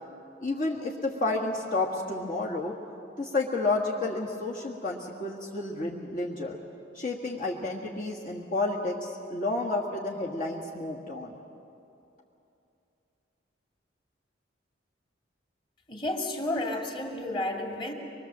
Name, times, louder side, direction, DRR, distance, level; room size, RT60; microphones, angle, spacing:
voice 1, 0.4-2.7 3.2-6.6 6.9-11.4, left 2 dB, 45° left, -3 dB, 1.7 m, -30 dB
voice 2, 15.9-17.9, left 1 dB, 25° left, 1 dB, 2.2 m, -31 dB
24.5 x 21.5 x 7.5 m, 2.8 s
head